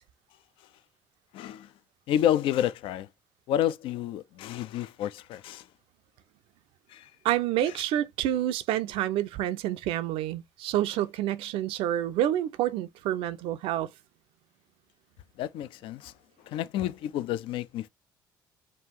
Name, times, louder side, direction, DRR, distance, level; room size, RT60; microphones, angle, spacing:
voice 1, 1.3-1.7 2.1-3.1 3.5-5.7 6.9-7.1 15.4-16.1 16.5-17.9, left 11 dB, 55° left, 0.4 m, -29 dB
voice 2, 7.2-13.9, right 12 dB, 60° right, 0.4 m, -28 dB
5.3 x 2.4 x 2.8 m
figure-of-eight pair, 50°, 11 cm